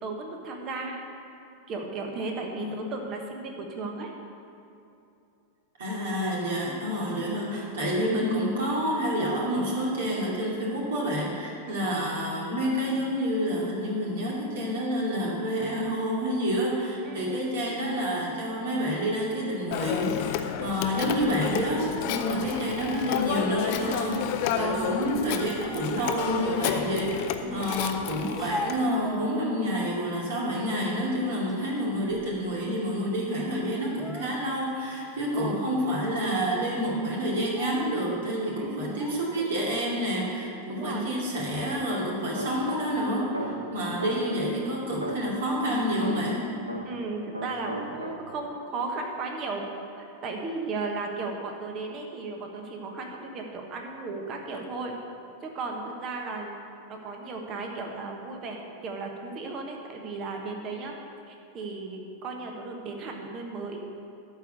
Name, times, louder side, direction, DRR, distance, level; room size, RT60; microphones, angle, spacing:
voice 1, 0.0-1.0 1.7-4.1 7.2-7.4 11.6-11.9 17.0-17.3 22.4-22.7 24.6-25.0 27.4-27.7 35.4-35.6 38.6-38.9 40.7-41.1 46.8-49.9 50.2-55.0 55.4-56.6 56.9-60.9 61.3-63.8, right 3 dB, 35° right, 2 dB, 1.4 m, -35 dB
voice 2, 2.6-2.9 5.8-46.5, equal, 60° right, -4 dB, 2.5 m, -28 dB
Telephone, 19.7-28.8, left 10 dB, 45° left, 0.6 m, -31 dB
Speech, 28.3-29.8 30.3-30.9 31.3-32.5 32.8-33.0 33.8-34.8 35.4-35.5 36.3-36.5 37.3-38.0 38.9-39.6, left 1 dB, ahead, 1.0 m, -40 dB
sound 1, 42.4-44.5 45.0-47.1 47.3-48.5, right 1 dB, 85° right, 0.9 m, -37 dB
12.5 x 4.8 x 8.0 m, 2.7 s
figure-of-eight pair, 90°, 0 cm